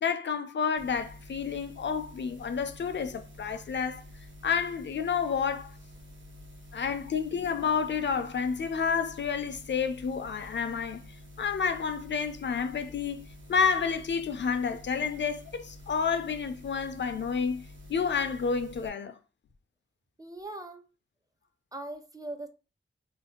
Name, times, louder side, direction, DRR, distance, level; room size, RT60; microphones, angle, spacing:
voice 1, 0.0-4.0 4.4-5.7 6.7-11.0 11.4-17.6 17.9-19.2, left 6 dB, 60° left, 0.4 m, -30 dB
sound 1, 0.8-18.9, left 1 dB, 65° right, 1.0 m, -49 dB
voice 2, 20.2-20.9 21.7-22.5, right 2 dB, 15° right, 0.4 m, -40 dB
2.6 x 2.4 x 3.7 m
wide cardioid pair, 85°, 21 cm